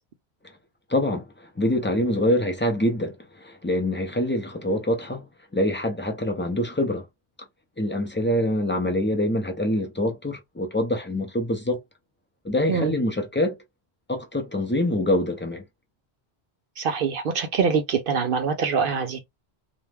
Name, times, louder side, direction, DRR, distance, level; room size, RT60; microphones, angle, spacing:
voice 1, 0.9-5.2 5.5-7.1 7.8-11.8 12.4-13.6 14.1-15.6, left 1 dB, 15° left, 0.4 m, -25 dB
voice 2, 16.8-19.2, right 5 dB, 60° right, 0.7 m, -24 dB
2.5 x 2.2 x 3.2 m
omnidirectional pair, 1.1 m